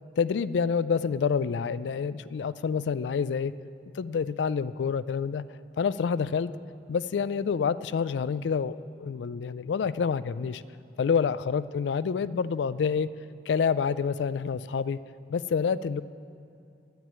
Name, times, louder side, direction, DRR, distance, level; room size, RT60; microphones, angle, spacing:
voice 1, 0.2-3.5 4.0-5.4 5.8-6.5 6.9-10.6 11.0-13.1 13.5-15.0 15.3-16.0, left 6 dB, 80° left, 16 dB, 0.3 m, -27 dB
9.2 x 8.9 x 9.5 m, 2.7 s
head